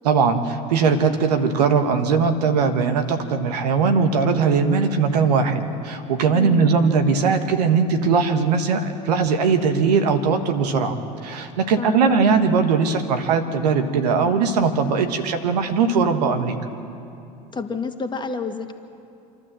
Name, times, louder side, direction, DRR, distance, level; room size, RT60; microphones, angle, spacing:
voice 1, 0.0-16.6, right 5 dB, 80° right, 7 dB, 1.5 m, -20 dB
voice 2, 6.3-6.7 11.8-12.1 17.5-18.7, left 4 dB, 20° left, 6 dB, 1.7 m, -29 dB
27.5 x 12.5 x 7.6 m, 2.6 s
hypercardioid pair, 75°, 21 cm